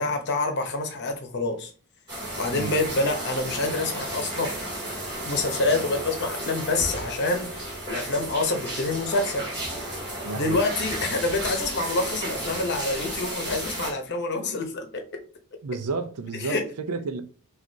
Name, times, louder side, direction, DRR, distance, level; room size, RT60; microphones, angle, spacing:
voice 1, 0.0-1.7 2.4-4.5 5.2-9.5 10.3-15.2 16.4-16.6, left 2 dB, 50° left, 0.8 m, -27 dB
sound 1, 2.1-13.9, right 1 dB, 20° right, 2.0 m, -33 dB
voice 2, 10.2-10.6 15.6-17.2, right 3 dB, 85° right, 0.5 m, -31 dB
6.2 x 2.5 x 2.7 m
head